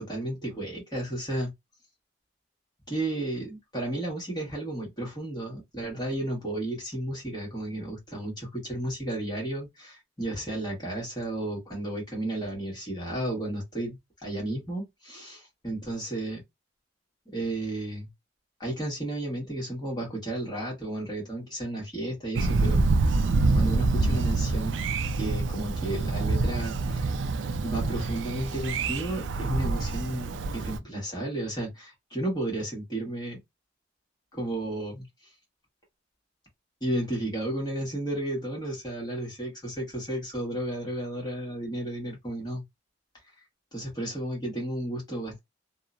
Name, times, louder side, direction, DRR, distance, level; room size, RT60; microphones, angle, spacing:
voice 1, 0.0-1.5 2.9-14.0 14.2-16.4 17.3-18.1 18.6-22.8 23.5-24.8 25.2-27.1 27.6-33.4 34.3-35.1 36.8-42.6 43.7-45.4, right 1 dB, 20° left, 1.3 m, -33 dB
Thunder, 22.4-30.8, right 3 dB, 65° right, 0.4 m, -26 dB
2.8 x 2.1 x 2.4 m
head